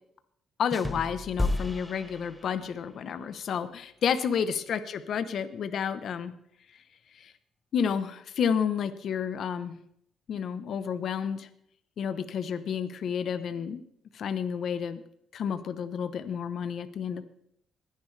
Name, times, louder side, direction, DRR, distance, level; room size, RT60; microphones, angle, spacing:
voice 1, 0.6-6.3 7.2-7.3 7.7-9.8 10.3-11.5 12.0-13.8 14.1-15.0 15.3-17.2, left 7 dB, 65° left, 11 dB, 0.9 m, -30 dB
sound 1, 0.7-2.9, left 2 dB, 10° left, 1.0 m, -33 dB
21.5 x 10.5 x 3.3 m, 0.72 s
cardioid pair, 90°, 0 cm